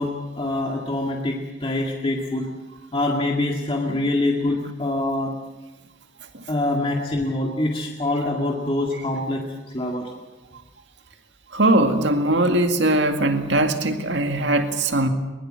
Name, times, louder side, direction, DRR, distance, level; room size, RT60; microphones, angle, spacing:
voice 1, 0.0-2.5 2.9-5.3 6.5-10.1, left 2 dB, 30° left, 0 dB, 2.0 m, -25 dB
voice 2, 11.5-15.1, right 1 dB, 70° right, 6 dB, 2.1 m, -20 dB
22.5 x 21.0 x 7.6 m, 1.2 s
head